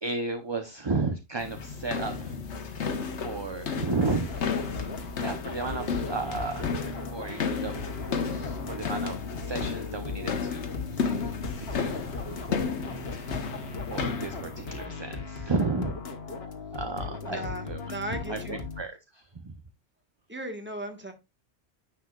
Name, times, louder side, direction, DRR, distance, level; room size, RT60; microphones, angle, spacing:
voice 1, 0.0-2.9 3.2-4.8 5.2-6.8 7.1-12.1 12.5-12.7 13.0-13.4 13.9-16.0 16.7-19.6, right 3 dB, 30° right, 0.7 m, -34 dB
sound 1, 1.4-14.9, left 5 dB, 90° left, 1.3 m, -33 dB
sound 2, 4.0-18.8, left 4 dB, 65° left, 1.4 m, -38 dB
voice 2, 17.2-18.6 20.3-21.1, right 1 dB, 10° right, 1.4 m, -37 dB
10.0 x 7.1 x 2.4 m
omnidirectional pair, 1.1 m